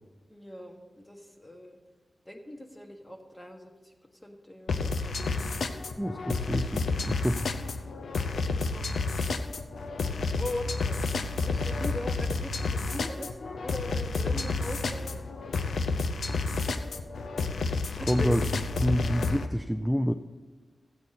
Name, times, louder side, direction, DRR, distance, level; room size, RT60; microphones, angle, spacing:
voice 1, 0.3-1.8 2.2-3.9 4.2-5.2 7.1-7.3 8.3-9.2 10.3-11.0 11.4-15.2 18.0-18.4, left 1 dB, 20° left, 3 dB, 1.6 m, -40 dB
sound 1, 4.7-19.5, left 3 dB, 80° left, 0.6 m, -30 dB
voice 2, 6.0-7.5 17.9-18.4 18.8-20.1, equal, ahead, 7 dB, 0.4 m, -28 dB
14.0 x 8.2 x 4.2 m, 1.3 s
cardioid pair, 55°, 0 cm